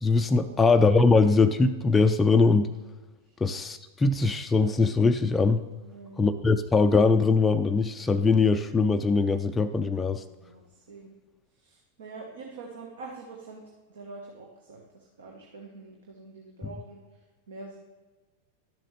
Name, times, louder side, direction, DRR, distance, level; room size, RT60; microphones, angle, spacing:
voice 1, 0.0-2.7 3.4-5.6 6.2-10.2, left 4 dB, 15° left, 7 dB, 0.4 m, -22 dB
voice 2, 5.8-6.3 10.3-11.1 11.6-13.6 13.9-17.0 17.5-17.8, right 3 dB, 65° right, 0 dB, 1.1 m, -45 dB
11.5 x 7.5 x 3.2 m, 1.3 s
figure-of-eight pair, 90°, 0 cm